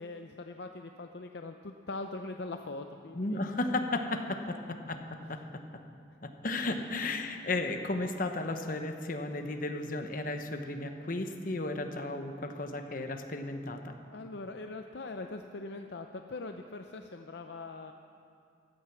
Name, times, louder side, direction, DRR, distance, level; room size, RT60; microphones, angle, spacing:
voice 1, 0.0-3.6 14.1-17.9, left 3 dB, 60° left, 5 dB, 0.6 m, -42 dB
voice 2, 3.1-4.2 4.5-5.0 5.3-5.4 6.2-14.0, left 2 dB, 45° left, 5 dB, 1.0 m, -34 dB
16.0 x 12.5 x 6.0 m, 2.4 s
head